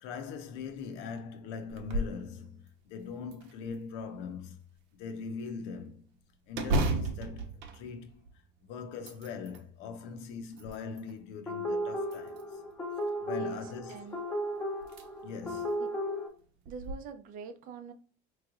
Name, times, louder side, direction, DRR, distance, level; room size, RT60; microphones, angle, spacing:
voice 1, 0.0-4.6 4.9-6.0 6.5-7.5 7.7-8.2 8.7-12.4 13.2-14.0 15.2-15.8, left 5 dB, 65° left, 0.7 m, -41 dB
sound 1, 1.7-2.2 2.7-2.8 3.3-4.1 6.5-8.5 8.9-9.7 10.3-11.1 12.0-12.7 14.2-14.3 14.8-15.0 15.5-15.6 16.7-16.9, right 2 dB, 65° right, 0.9 m, -34 dB
sound 2, 11.5-16.3, equal, 10° left, 1.0 m, -35 dB
voice 2, 13.3-14.2 15.8-15.9 16.7-17.9, right 6 dB, 40° right, 0.6 m, -45 dB
4.8 x 3.2 x 2.4 m
cardioid pair, 180°, 21 cm